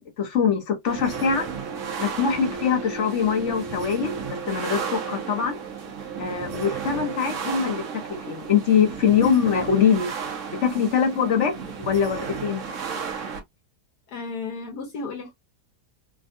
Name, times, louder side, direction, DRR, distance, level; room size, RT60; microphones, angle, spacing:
voice 1, 0.0-1.5 2.0-5.6 6.2-7.8 8.1-10.1 10.5-12.6, left 7 dB, 55° left, 1.0 m, -23 dB
sound 1, 0.9-13.4, right 6 dB, 55° right, 1.0 m, -33 dB
voice 2, 14.1-15.3, left 4 dB, 70° left, 1.4 m, -33 dB
3.5 x 2.3 x 2.5 m
omnidirectional pair, 1.8 m